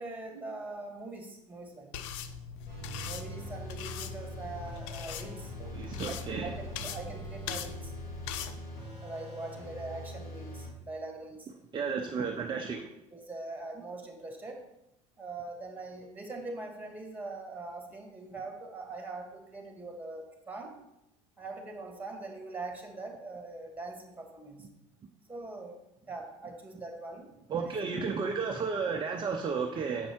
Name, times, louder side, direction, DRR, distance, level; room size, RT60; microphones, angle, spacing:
voice 1, 0.0-1.9 3.0-5.5 6.1-7.9 9.0-11.5 12.0-12.3 13.1-14.6 15.2-20.7 21.4-24.7 25.3-27.3 27.6-27.8, right 2 dB, 10° right, 3 dB, 1.9 m, -42 dB
sound 1, 1.9-8.5, left 8 dB, 75° left, 0.6 m, -41 dB
sound 2, 2.7-10.7, right 1 dB, 55° left, 3.2 m, -43 dB
voice 2, 5.6-6.5 11.7-12.9 27.5-30.1, right 5 dB, 30° right, 3 dB, 0.7 m, -33 dB
7.5 x 5.4 x 4.4 m, 0.88 s
hypercardioid pair, 90°, 17 cm